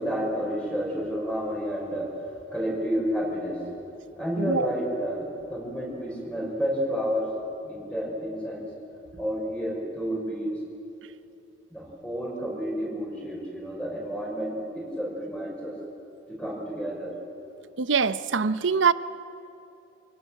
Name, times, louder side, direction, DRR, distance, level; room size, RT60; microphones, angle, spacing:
voice 1, 0.0-3.7 4.2-7.3 7.6-8.7 9.1-10.6 11.7-15.8 16.3-17.1, equal, 5° left, 5.6 m, -30 dB
voice 2, 4.4-4.7 17.8-18.9, right 5 dB, 80° right, 0.8 m, -23 dB
28.0 x 18.0 x 7.8 m
head